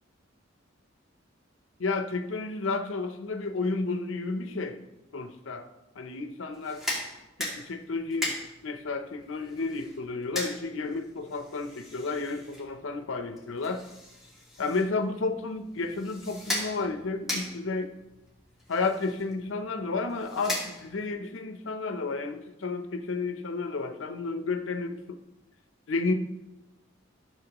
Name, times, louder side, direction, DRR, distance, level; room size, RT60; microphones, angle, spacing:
voice 1, 1.8-4.8 5.1-5.7 6.0-6.8 7.4-8.3 8.6-13.8 14.6-17.9 18.7-25.2 25.9-26.1, left 3 dB, 85° left, 7 dB, 0.7 m, -32 dB
sound 1, 6.5-21.2, left 1 dB, ahead, 2.3 m, -39 dB
13.0 x 7.0 x 3.0 m, 0.97 s
head